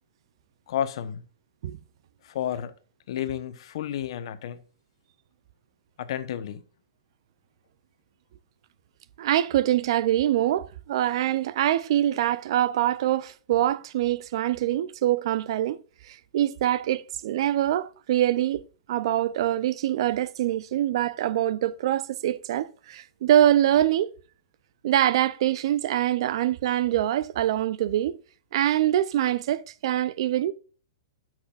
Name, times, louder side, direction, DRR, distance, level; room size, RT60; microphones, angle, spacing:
voice 1, 0.7-1.2 2.2-2.7 3.1-4.6 6.0-6.6, left 10 dB, 65° left, 1.0 m, -31 dB
voice 2, 9.2-15.8 16.1-18.6 18.9-24.1 24.8-28.2 28.5-30.5, right 12 dB, 60° right, 0.6 m, -24 dB
13.0 x 6.1 x 2.5 m
hypercardioid pair, 135°, 3 cm